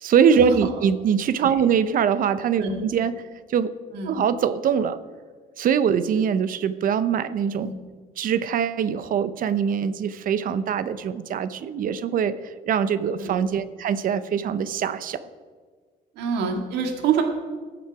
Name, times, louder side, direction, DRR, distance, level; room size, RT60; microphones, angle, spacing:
voice 1, 0.0-3.1 3.5-3.7 4.1-5.0 5.6-7.7 8.2-12.3 12.7-15.2, right 7 dB, 55° right, 14 dB, 0.8 m, -23 dB
voice 2, 16.2-17.2, right 6 dB, 85° right, 3 dB, 2.0 m, -26 dB
18.0 x 7.2 x 4.8 m, 1.5 s
cardioid pair, 110°, 17 cm